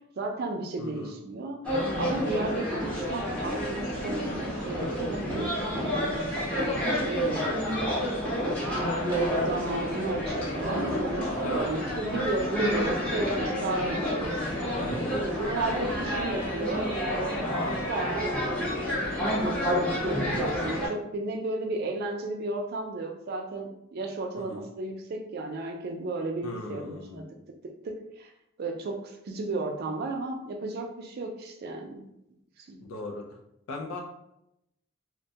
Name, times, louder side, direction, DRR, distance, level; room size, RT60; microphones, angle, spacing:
voice 1, 0.2-1.6 2.0-7.6 9.1-14.4 15.4-17.5 17.9-18.4 19.4-27.3 27.8-28.3 28.6-32.1 32.6-32.8, right 2 dB, 50° right, 4 dB, 0.3 m, -33 dB
voice 2, 0.8-1.1 9.1-9.3 11.3-12.2 14.7-15.2 15.9-16.0 17.7-17.8 24.4-24.6 26.4-27.2 32.8-33.3 33.7-34.0, left 2 dB, 85° left, 0 dB, 0.4 m, -39 dB
sound 1, 1.6-20.9, equal, 5° left, 0.5 m, -29 dB
2.1 x 2.1 x 2.7 m, 0.82 s
head